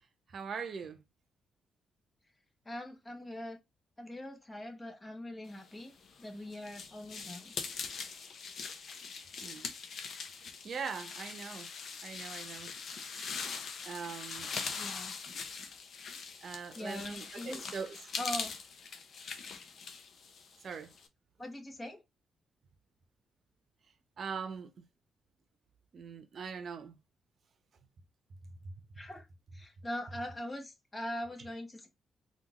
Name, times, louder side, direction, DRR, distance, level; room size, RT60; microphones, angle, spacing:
voice 1, 0.3-1.0 9.4-9.7 10.6-11.7 12.0-12.7 13.8-14.5 16.4-18.2 20.6-20.9 24.2-24.8 25.9-27.0 28.6-28.7, right 6 dB, 60° right, 0.7 m, -41 dB
voice 2, 2.6-3.6 4.0-5.9 6.2-7.5 14.7-15.1 16.7-17.6 18.2-18.5 21.4-22.0 29.0-29.3 29.5-31.9, left 1 dB, 20° left, 1.1 m, -42 dB
sound 1, 5.9-21.1, left 5 dB, 65° left, 0.6 m, -42 dB
3.6 x 2.5 x 3.0 m
cardioid pair, 75°, 0 cm